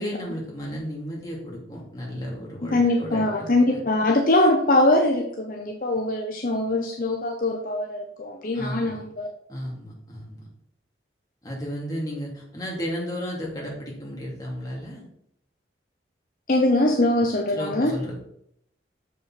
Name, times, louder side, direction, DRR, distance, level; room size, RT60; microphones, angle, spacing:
voice 1, 0.0-3.8 8.5-9.0 9.5-10.4 11.4-15.1 17.1-17.3 17.5-18.2, equal, 20° left, -4 dB, 2.6 m, -33 dB
voice 2, 2.7-9.3 16.5-18.0, left 1 dB, 50° left, 1 dB, 0.8 m, -22 dB
6.9 x 5.5 x 5.8 m, 0.73 s
head